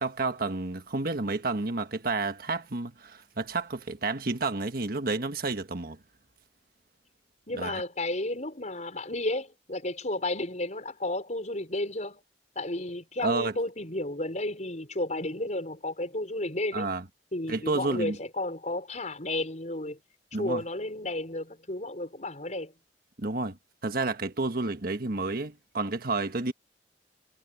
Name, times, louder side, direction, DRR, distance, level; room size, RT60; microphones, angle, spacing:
voice 1, 0.0-6.0 7.5-7.8 13.2-13.6 16.7-17.0 17.5-18.2 20.3-20.6 23.2-23.6 23.8-26.5, right 3 dB, 55° right, 1.5 m, -30 dB
voice 2, 7.5-12.2 12.6-16.9 17.3-20.0 20.4-22.7, left 1 dB, 40° left, 5.9 m, -32 dB
head